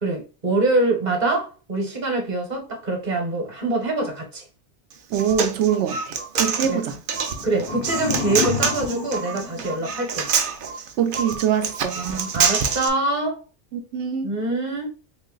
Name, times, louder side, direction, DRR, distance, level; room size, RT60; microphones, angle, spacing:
voice 1, 0.0-4.4 6.7-6.8 7.4-10.2 12.0-13.4 14.2-14.9, right 2 dB, 40° right, 1.0 m, -24 dB
Human voice, 4.9-12.9, right 6 dB, 60° right, 0.7 m, -26 dB
voice 2, 5.1-7.0 11.0-12.0 13.7-14.3, right 8 dB, 85° right, 0.9 m, -24 dB
sound 1, 7.2-10.3, left 6 dB, 85° left, 0.9 m, -30 dB
3.0 x 2.5 x 3.7 m
omnidirectional pair, 1.2 m